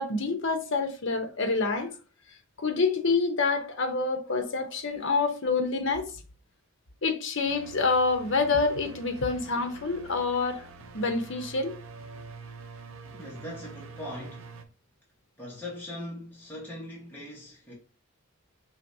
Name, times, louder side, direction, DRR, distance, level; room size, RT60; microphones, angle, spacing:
voice 1, 0.0-1.9 2.6-6.1 7.0-10.6 10.9-11.8, left 4 dB, 60° left, 0.8 m, -27 dB
sound 1, 7.5-14.6, right 3 dB, 80° right, 0.6 m, -46 dB
voice 2, 13.1-14.5 15.4-17.7, left 1 dB, 10° left, 1.1 m, -40 dB
5.0 x 3.1 x 2.7 m
head